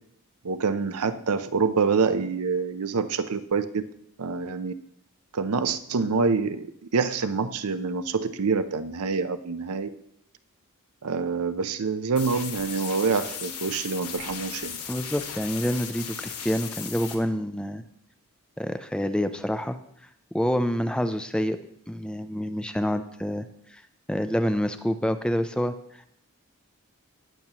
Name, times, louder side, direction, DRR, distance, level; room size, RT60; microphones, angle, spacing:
voice 1, 0.4-3.8 4.2-4.7 5.3-6.7 6.9-9.9 11.0-14.8, right 5 dB, 85° right, 11 dB, 0.6 m, -26 dB
sound 1, 12.2-17.2, left 7 dB, 80° left, 1.5 m, -37 dB
voice 2, 14.9-17.8 18.6-19.8 20.3-21.6 21.9-23.5 23.7-23.8 24.1-25.7, equal, 5° left, 10 dB, 0.4 m, -27 dB
19.0 x 6.9 x 3.0 m, 0.71 s
head